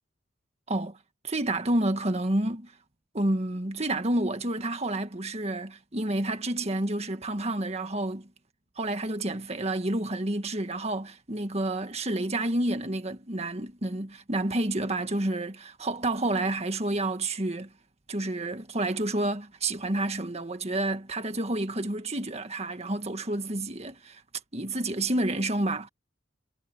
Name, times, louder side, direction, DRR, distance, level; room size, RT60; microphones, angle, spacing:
voice 1, 0.7-1.0 1.2-2.7 3.1-8.3 8.8-17.7 18.1-24.2 24.5-25.9, right 1 dB, 35° right, 1.8 m, -29 dB
head